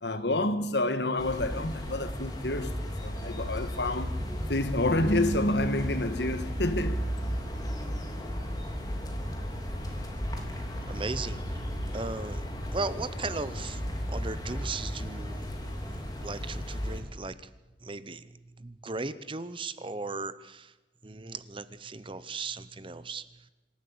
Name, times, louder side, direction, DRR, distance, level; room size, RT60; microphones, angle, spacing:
voice 1, 0.0-4.1 4.5-7.0, left 1 dB, 65° left, 1.5 m, -28 dB
sound 1, 1.2-17.0, equal, 20° left, 3.0 m, -34 dB
voice 2, 10.3-15.5 15.9-17.3 17.8-18.3 18.6-20.7 21.0-23.2, right 3 dB, 25° right, 0.7 m, -37 dB
25.5 x 12.5 x 8.6 m
head